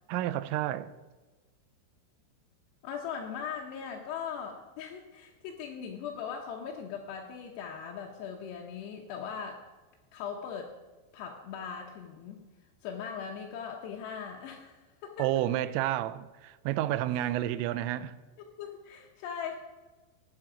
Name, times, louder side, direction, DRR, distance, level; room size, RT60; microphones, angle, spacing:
voice 1, 0.1-0.9 15.2-18.1, right 13 dB, 90° right, 3.2 m, -30 dB
voice 2, 2.8-9.7 10.1-10.7 11.1-12.4 12.8-15.3 18.6-19.6, left 7 dB, 75° left, 2.7 m, -39 dB
19.0 x 7.7 x 5.0 m
omnidirectional pair, 5.7 m